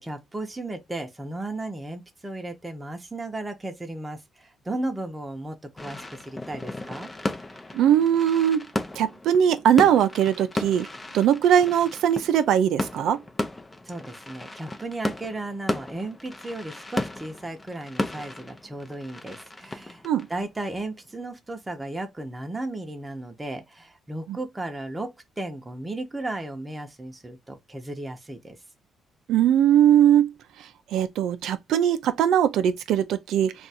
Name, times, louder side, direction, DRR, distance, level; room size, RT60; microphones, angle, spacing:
voice 1, 0.0-7.1 13.8-20.0 20.3-28.6, right 2 dB, 15° right, 0.7 m, -35 dB
sound 1, 5.8-21.1, left 2 dB, 20° left, 0.6 m, -35 dB
voice 2, 7.7-8.6 9.0-10.9 11.1-13.2 20.0-20.3 29.3-30.3 30.9-33.5, right 9 dB, 80° right, 0.3 m, -20 dB
2.5 x 2.3 x 4.1 m
cardioid pair, 90°, 0 cm